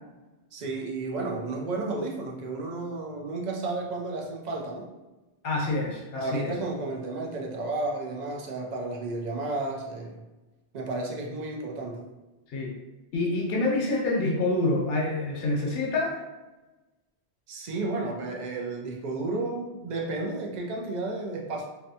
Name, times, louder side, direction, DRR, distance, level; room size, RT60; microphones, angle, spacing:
voice 1, 0.5-4.9 6.2-10.2 10.7-12.0 17.5-21.7, right 2 dB, 55° right, -1 dB, 0.5 m, -32 dB
voice 2, 5.4-6.5 12.5-12.7 13.1-16.2, left 2 dB, 65° left, -1 dB, 0.9 m, -27 dB
2.6 x 2.1 x 2.7 m, 1.1 s
omnidirectional pair, 1.1 m